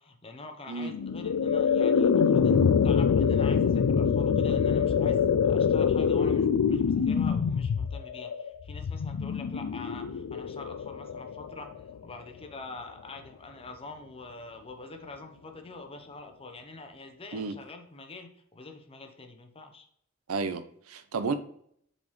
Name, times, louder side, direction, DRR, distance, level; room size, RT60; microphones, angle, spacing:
voice 1, 0.0-19.9, left 3 dB, 25° left, 0.8 m, -45 dB
sound 1, 0.9-12.0, left 6 dB, 75° left, 0.4 m, -25 dB
voice 2, 20.3-21.3, right 4 dB, 75° right, 0.6 m, -32 dB
7.1 x 4.1 x 3.2 m
head